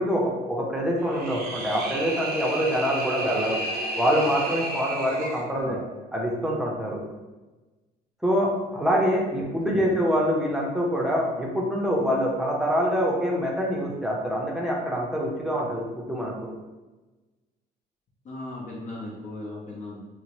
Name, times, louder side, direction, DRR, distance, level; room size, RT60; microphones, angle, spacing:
voice 1, 0.0-3.6 4.0-5.8 6.1-7.0 8.2-16.3, equal, 5° right, -3 dB, 0.6 m, -25 dB
sound 1, 1.0-5.5, right 2 dB, 65° right, 0.6 m, -32 dB
voice 2, 5.5-5.8 9.4-9.9 18.2-20.0, left 2 dB, 45° left, -4 dB, 0.6 m, -37 dB
2.8 x 2.1 x 3.0 m, 1.2 s
cardioid pair, 110°, 17 cm